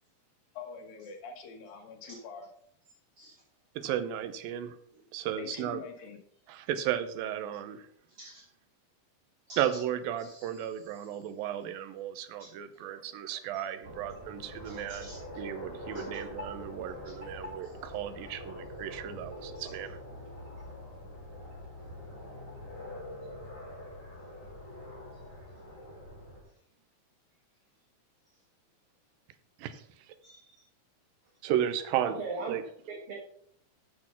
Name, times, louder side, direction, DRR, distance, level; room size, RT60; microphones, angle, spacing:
voice 1, 0.5-2.5 5.4-6.2, left 6 dB, 85° left, 2 dB, 3.3 m, -44 dB
voice 2, 3.8-4.8 5.1-5.8 6.5-7.9 9.6-15.1 15.4-19.9 29.6-29.8 31.4-32.2 32.5-32.6, right 10 dB, 85° right, 11 dB, 2.6 m, -34 dB
voice 3, 10.2-11.0 12.4-12.5 12.8-12.9 13.5-13.6 14.6-15.2 15.9-16.1 17.0-17.1 30.2-30.6 32.0-32.6 32.9-33.1, right 3 dB, 50° right, -1 dB, 2.0 m, -43 dB
sound 1, 13.8-26.4, left 1 dB, 10° right, 4.8 m, -44 dB
8.4 x 6.7 x 5.6 m, 0.66 s
omnidirectional pair, 4.0 m